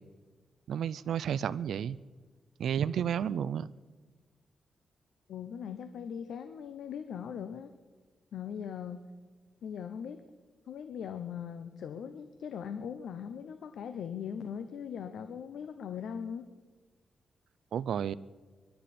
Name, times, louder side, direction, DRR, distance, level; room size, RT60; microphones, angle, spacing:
voice 1, 0.7-2.0 2.6-3.7 17.7-18.1, right 8 dB, 80° right, 18 dB, 0.4 m, -31 dB
voice 2, 5.3-7.7 8.3-9.1 9.6-10.2 10.7-16.5, left 7 dB, 85° left, 9 dB, 0.7 m, -40 dB
25.0 x 12.0 x 4.3 m, 1.4 s
cardioid pair, 100°, 0 cm